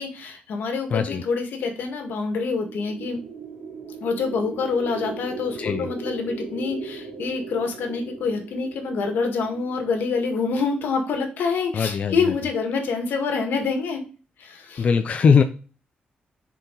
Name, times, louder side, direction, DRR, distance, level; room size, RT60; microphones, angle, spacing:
voice 1, 0.0-3.2 4.0-14.0 14.4-14.8, left 4 dB, 90° left, 4 dB, 1.8 m, -26 dB
voice 2, 0.9-1.2 5.6-5.9 11.7-12.1 14.8-15.4, left 6 dB, 40° left, 7 dB, 0.5 m, -20 dB
sound 1, 2.5-10.6, right 4 dB, 60° right, 2.2 m, -38 dB
6.9 x 4.6 x 3.9 m, 0.36 s
wide cardioid pair, 165°, 3 cm